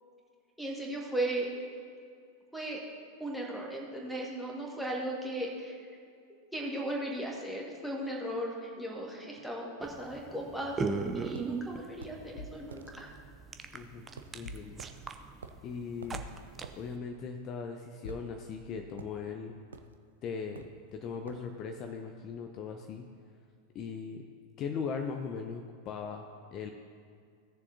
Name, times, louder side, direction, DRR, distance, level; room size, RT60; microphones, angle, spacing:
voice 1, 0.6-1.5 2.5-2.8 3.2-5.9 6.5-10.8 11.1-13.1, right 1 dB, ahead, -3 dB, 1.8 m, -36 dB
sound 1, 9.8-17.0, right 4 dB, 20° right, 0.6 m, -39 dB
sound 2, 11.3-11.5 12.0-12.2 12.7-12.9 14.2-14.4 14.8-14.9 15.4-15.7 16.0-16.2 16.6-16.8 18.1-18.6 19.0-19.2 19.7-20.0 20.5-20.8 21.3-21.5, right 6 dB, 70° right, 0.5 m, -48 dB
sound 3, 12.4-13.8 14.4-15.3 16.1-17.0 18.0-18.9, left 2 dB, 70° left, 0.7 m, -49 dB
voice 2, 13.7-14.0 14.3-14.8 15.6-16.2 16.8-19.5 20.2-23.1 23.7-24.2 24.6-26.7, left 5 dB, 35° left, 4 dB, 0.6 m, -39 dB
17.0 x 6.9 x 2.8 m, 2.2 s
figure-of-eight pair, 90°, 0 cm